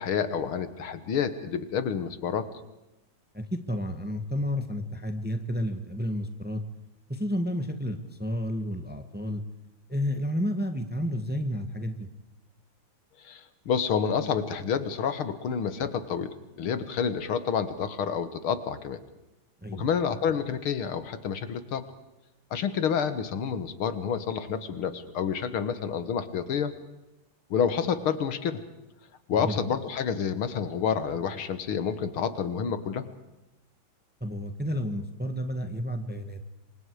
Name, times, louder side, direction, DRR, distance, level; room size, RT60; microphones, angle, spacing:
voice 1, 0.0-2.5 13.2-16.3 16.6-19.0 19.7-21.8 22.5-26.7 27.5-28.6 29.3-33.1, left 7 dB, 80° left, 12 dB, 2.3 m, -29 dB
voice 2, 3.3-6.6 7.1-9.4 9.9-12.1 19.6-19.9 29.3-29.6 34.2-36.4, equal, 5° right, 7 dB, 1.4 m, -31 dB
28.0 x 24.5 x 4.9 m, 0.96 s
omnidirectional pair, 2.3 m